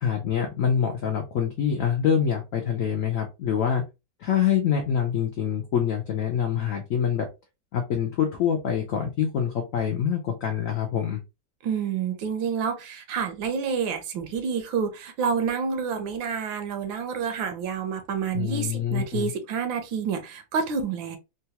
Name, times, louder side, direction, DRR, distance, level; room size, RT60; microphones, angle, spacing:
voice 1, 0.0-3.8 4.2-7.3 7.7-11.2 18.3-19.3, left 8 dB, 75° left, 0.7 m, -25 dB
voice 2, 11.6-21.2, right 6 dB, 80° right, 1.5 m, -28 dB
3.8 x 2.3 x 2.8 m
omnidirectional pair, 2.1 m